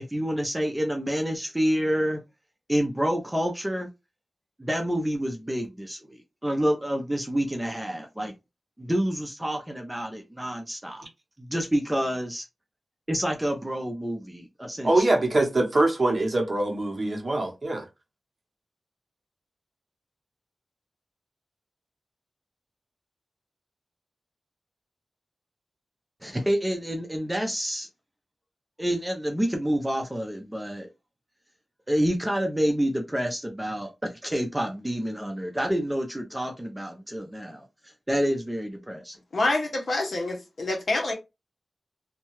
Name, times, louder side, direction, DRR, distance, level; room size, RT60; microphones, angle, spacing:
voice 1, 0.0-2.2 2.7-3.9 4.6-8.3 8.8-11.0 11.4-12.4 13.1-15.0 26.2-27.9 28.8-30.9 31.9-37.6 38.1-39.2, equal, 10° right, 0.5 m, -28 dB
voice 2, 14.8-17.9, right 2 dB, 40° right, 0.8 m, -23 dB
voice 3, 39.3-41.1, left 2 dB, 55° left, 0.8 m, -26 dB
2.7 x 2.2 x 3.0 m
wide cardioid pair, 110°, 0 cm